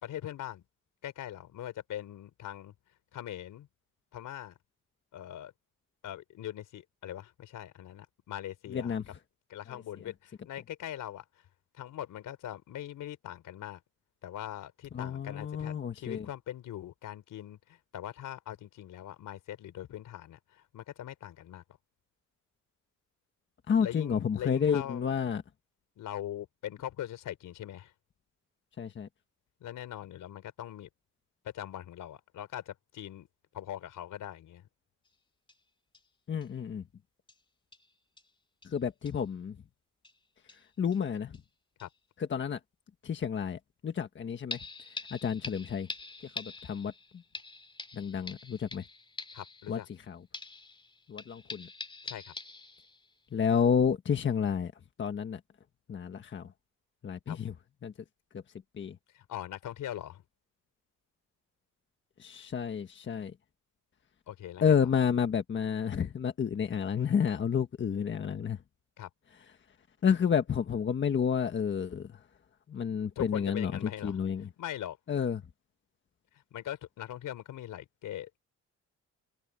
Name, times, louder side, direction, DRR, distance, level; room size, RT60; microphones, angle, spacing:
voice 1, 0.0-0.6 1.0-2.7 3.1-3.7 4.1-4.6 5.1-5.5 6.0-8.9 9.5-11.4 11.7-13.8 14.2-21.6 23.8-25.1 26.0-27.9 29.6-30.9 31.4-33.3 33.5-34.7 41.8-41.9 49.3-49.9 52.0-52.3 57.3-57.4 59.1-60.2 64.3-64.9 69.0-69.1 73.2-74.2 74.6-75.0 76.3-78.4, left 12 dB, 80° left, 3.8 m, -41 dB
voice 2, 8.7-9.0 14.9-16.2 23.7-25.4 28.8-29.1 36.3-36.8 38.6-39.6 40.8-41.4 42.3-42.6 43.0-44.6 45.1-45.9 46.3-46.9 47.9-48.8 49.7-49.8 50.1-50.2 51.1-51.7 53.3-54.7 55.0-55.4 55.9-56.5 57.0-57.5 57.8-57.9 58.3-58.4 58.7-59.0 62.2-63.3 64.6-68.6 70.0-72.1 72.7-74.5 75.1-75.4, left 7 dB, 40° left, 1.4 m, -30 dB
sound 1, 35.1-35.2 35.5-35.6 35.9-36.0 36.4-36.5 37.3-37.4 37.7-37.9 38.2-38.3 38.6-38.7 39.1-39.2 40.0-40.2 40.5-41.0 41.3-41.4 41.8-41.9 44.5-50.0 50.3-53.1 53.5-53.6, left 3 dB, 15° left, 2.4 m, -45 dB
cardioid pair, 140°, 31 cm